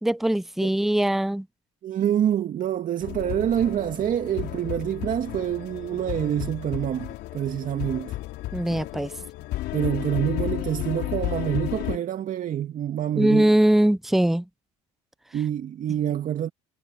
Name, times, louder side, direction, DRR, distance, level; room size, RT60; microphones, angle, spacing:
voice 1, 0.0-1.5 8.5-9.1 13.1-14.4, right 1 dB, ahead, 0.4 m, -21 dB
voice 2, 1.8-8.2 9.7-13.5 15.3-16.5, right 10 dB, 50° right, 2.4 m, -26 dB
sound 1, 3.0-12.0, left 16 dB, 65° left, 4.0 m, -33 dB
hypercardioid pair, 75°, 18 cm